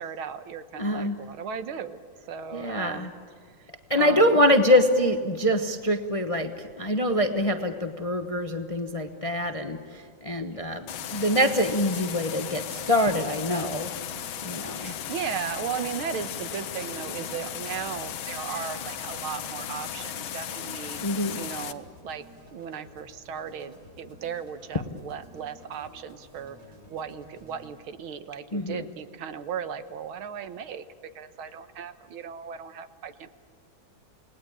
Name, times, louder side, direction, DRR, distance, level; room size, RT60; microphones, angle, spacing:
voice 1, 0.0-2.0 2.3-3.1 3.6-4.3 14.7-21.0 21.4-22.2 22.5-26.6 26.9-33.3, right 7 dB, 85° right, 10 dB, 2.0 m, -36 dB
voice 2, 0.8-1.1 2.5-3.1 3.9-13.9 14.4-15.0 21.0-21.4 28.5-28.8, left 1 dB, 25° left, 6 dB, 0.7 m, -25 dB
sound 1, 10.9-21.7, left 9 dB, 85° left, 1.8 m, -36 dB
sound 2, 12.6-27.7, equal, 60° right, 7.6 m, -52 dB
28.5 x 19.5 x 8.6 m, 2.1 s
omnidirectional pair, 2.3 m